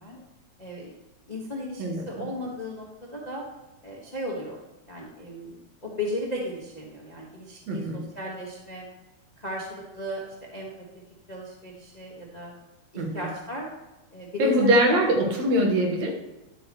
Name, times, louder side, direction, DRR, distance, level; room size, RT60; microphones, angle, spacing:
voice 1, 0.6-0.9 1.3-2.9 3.1-3.4 3.8-4.6 4.9-8.8 9.4-10.2 10.5-10.7 11.3-12.5 12.9-13.7 14.1-15.0, left 2 dB, 30° left, -2 dB, 0.7 m, -35 dB
voice 2, 1.8-2.3 7.7-8.1 13.0-13.3 14.4-16.2, right 1 dB, 70° right, 1 dB, 2.6 m, -23 dB
11.0 x 8.7 x 3.1 m, 0.99 s
omnidirectional pair, 3.3 m